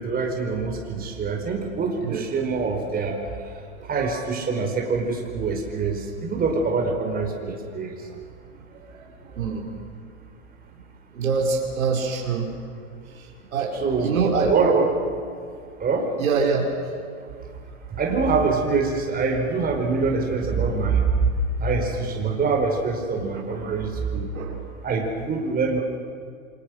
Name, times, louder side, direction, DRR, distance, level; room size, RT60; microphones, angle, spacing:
voice 1, 0.0-8.1 13.7-14.2 14.5-14.9 15.8-16.1 17.9-21.3 21.6-24.3 24.8-25.8, right 4 dB, 20° right, 2 dB, 4.8 m, -24 dB
voice 2, 9.3-9.7 11.1-12.5 13.5-13.7 14.0-14.5 16.2-16.7 23.3-23.6 24.3-24.6, right 5 dB, 90° right, 0 dB, 5.2 m, -24 dB
28.0 x 25.0 x 6.4 m, 2.2 s
hypercardioid pair, 120°, 41 cm